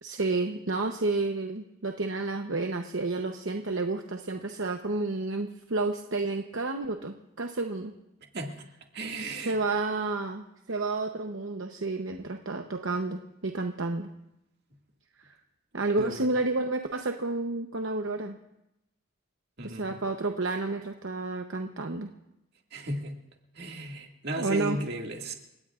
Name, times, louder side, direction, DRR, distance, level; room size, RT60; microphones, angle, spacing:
voice 1, 0.0-7.9 9.2-14.1 15.2-15.3 15.7-18.4 19.6-22.1 24.4-24.8, right 3 dB, 65° right, 4 dB, 0.9 m, -30 dB
voice 2, 8.9-9.6 16.0-16.3 19.6-20.0 22.7-23.1 23.6-25.3, right 1 dB, 50° right, 1 dB, 2.1 m, -35 dB
30.0 x 17.0 x 2.5 m, 0.88 s
head